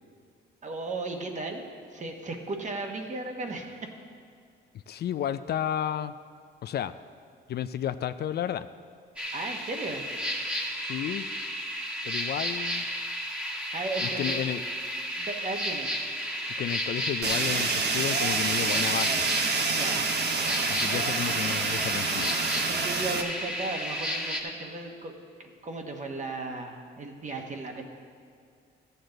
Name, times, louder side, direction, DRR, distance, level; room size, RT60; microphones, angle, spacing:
voice 1, 0.6-3.9 9.3-10.1 13.7-14.4 15.2-16.0 19.6-20.0 20.9-21.0 22.6-25.1 25.4-27.8, right 2 dB, 40° right, 3 dB, 1.4 m, -36 dB
voice 2, 4.9-6.1 6.6-6.9 7.5-8.7 10.8-11.3 12.0-12.8 14.2-14.6 16.6-19.2 20.7-22.3, left 10 dB, 55° left, 12 dB, 0.4 m, -32 dB
sound 1, 9.2-24.4, equal, 5° right, 1.4 m, -33 dB
Fire, 17.2-23.2, right 4 dB, 55° right, 1.1 m, -28 dB
14.0 x 8.0 x 3.9 m, 2.3 s
cardioid pair, 90°, 20 cm